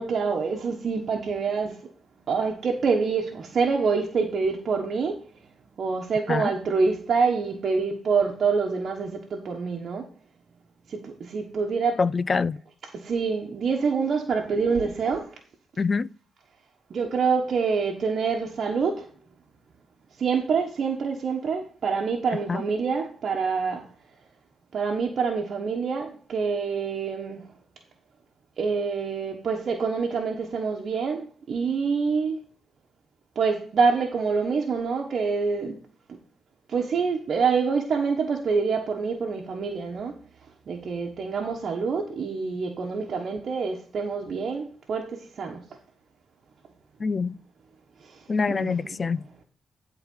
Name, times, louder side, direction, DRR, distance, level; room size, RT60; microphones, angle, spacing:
voice 1, 0.0-1.8 2.3-5.2 5.8-10.1 10.9-12.0 12.9-15.3 16.9-19.1 20.2-23.9 24.7-27.4 28.6-32.4 33.3-35.8 36.7-40.2 40.7-45.6 48.0-48.2 48.5-49.0, right 5 dB, 50° right, 1.3 m, -26 dB
voice 2, 12.0-12.6 15.8-16.1 22.5-22.6 47.0-47.4 48.3-49.3, left 4 dB, 35° left, 0.3 m, -25 dB
11.0 x 4.0 x 5.5 m
cardioid pair, 105°, 0 cm